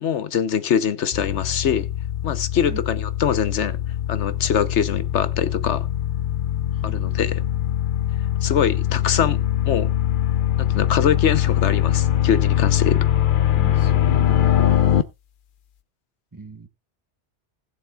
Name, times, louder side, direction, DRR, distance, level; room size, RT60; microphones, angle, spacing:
voice 1, 0.0-1.9 2.2-3.8 4.1-5.9 6.8-7.4 8.4-9.4 9.7-9.9 10.6-13.1, left 8 dB, 75° left, 1.2 m, -23 dB
sound 1, 1.1-15.0, left 11 dB, 55° left, 0.8 m, -22 dB
voice 2, 6.7-7.1 13.6-14.7 16.3-16.7, right 3 dB, 20° right, 0.8 m, -38 dB
19.5 x 7.3 x 2.3 m
omnidirectional pair, 1.2 m